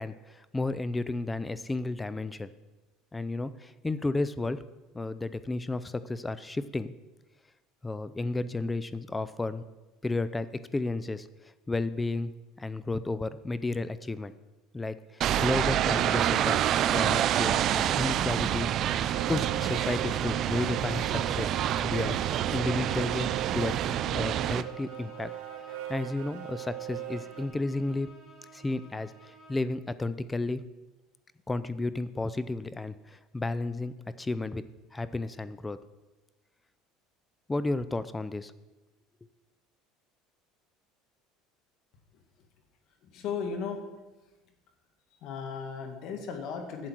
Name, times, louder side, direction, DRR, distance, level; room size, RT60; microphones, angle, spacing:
voice 1, 0.0-2.5 3.1-4.6 4.9-6.9 7.8-9.6 10.0-11.3 11.7-12.3 12.6-14.3 14.7-16.6 16.9-18.7 19.3-21.5 21.8-23.8 24.1-25.3 25.9-28.1 28.5-30.6 31.5-34.6 34.9-35.8 37.5-38.5, left 2 dB, 15° left, 15 dB, 0.5 m, -32 dB
sound 1, 15.2-24.6, right 11 dB, 50° right, 0.4 m, -27 dB
sound 2, 18.8-27.5, right 14 dB, 85° right, 1.1 m, -40 dB
Bowed string instrument, 24.1-29.7, right 2 dB, 40° left, 3.4 m, -53 dB
voice 2, 43.1-43.8 45.2-46.9, left 6 dB, 60° left, 5 dB, 1.8 m, -35 dB
11.5 x 7.8 x 4.5 m, 1.1 s
supercardioid pair, 110°, 0 cm